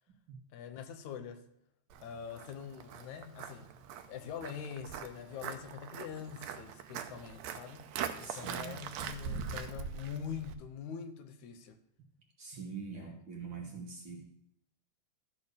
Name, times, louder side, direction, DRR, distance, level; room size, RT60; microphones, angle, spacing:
voice 1, 0.5-1.4 2.0-3.7 4.1-7.9 8.2-11.8 12.9-13.1, left 7 dB, 80° left, 2.2 m, -44 dB
Walk footsteps, 1.9-10.5, right 7 dB, 75° right, 1.8 m, -42 dB
voice 2, 8.2-8.8 12.4-14.2, right 5 dB, 50° right, 1.7 m, -44 dB
13.5 x 4.5 x 6.5 m
omnidirectional pair, 3.4 m